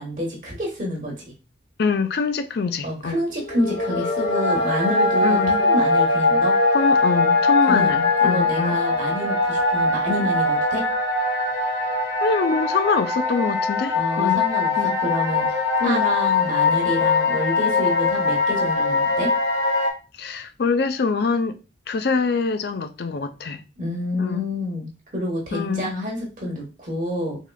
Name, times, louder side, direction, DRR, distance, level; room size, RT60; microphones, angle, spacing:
voice 1, 0.0-1.3 2.8-6.6 7.6-7.9 8.2-10.8 13.9-19.3 23.8-27.4, left 1 dB, 45° right, 1.0 m, -28 dB
voice 2, 1.8-3.2 5.2-5.7 6.7-8.8 12.2-14.4 14.8-15.0 15.8-16.0 20.2-21.6 21.9-23.6 24.2-24.5 25.5-25.9, left 4 dB, 55° left, 0.4 m, -24 dB
sound 1, 3.4-19.9, left 3 dB, 85° left, 1.2 m, -21 dB
3.6 x 3.6 x 2.2 m
head